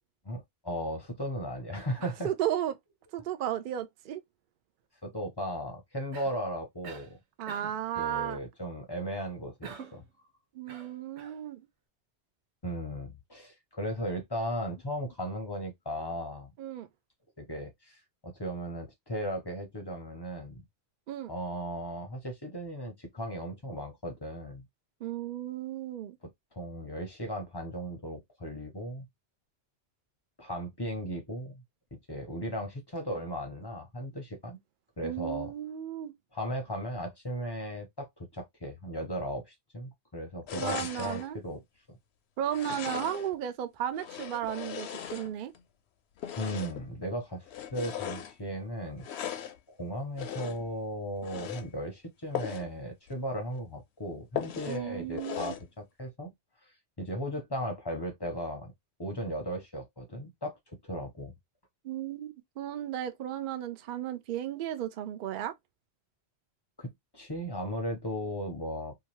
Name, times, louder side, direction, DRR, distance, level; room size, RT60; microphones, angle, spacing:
voice 1, 0.3-2.3 5.0-7.2 8.0-10.0 12.6-16.5 17.4-20.6 21.3-24.7 26.5-29.1 30.4-31.6 32.1-34.6 35.0-35.5 36.3-41.6 46.4-49.4 49.8-56.3 56.6-58.7 59.0-61.3 66.8-69.0, equal, 30° left, 0.6 m, -36 dB
voice 2, 2.2-2.7 3.1-4.2 7.4-8.4 10.5-11.6 16.6-16.9 21.1-21.3 25.0-26.2 35.0-36.1 40.6-41.4 42.4-45.5 54.7-55.5 61.8-65.5, right 11 dB, 60° right, 0.6 m, -34 dB
Cough, 6.1-6.4 6.8-7.1 7.5-7.8 9.6-10.1 10.7-11.4, right 6 dB, 75° right, 1.0 m, -46 dB
sound 1, 40.5-41.3 42.4-43.4 43.9-45.6 46.2-46.9 47.5-48.3 49.0-49.6 50.2-50.7 51.2-51.7 52.3-52.7 53.1-53.2 53.5-53.6 54.4-54.8 55.2-55.7, left 10 dB, 70° left, 0.8 m, -38 dB
2.8 x 2.2 x 2.9 m
omnidirectional pair, 1.2 m